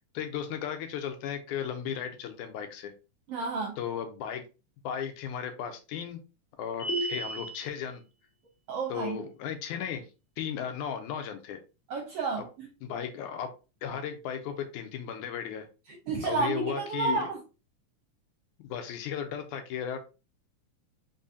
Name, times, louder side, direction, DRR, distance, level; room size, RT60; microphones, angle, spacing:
voice 1, 0.0-2.9 3.8-4.4 4.8-6.2 6.6-8.0 8.9-10.0 10.4-11.6 12.8-13.5 13.8-15.7 16.2-17.3 18.6-20.0, left 8 dB, 80° left, 2.1 m, -35 dB
voice 2, 3.3-3.8 8.7-9.2 11.9-12.7 15.9-17.4, right 4 dB, 70° right, 1.4 m, -31 dB
sound 1, 6.8-7.7, right 1 dB, 60° left, 1.2 m, -32 dB
4.8 x 3.7 x 2.7 m
omnidirectional pair, 3.6 m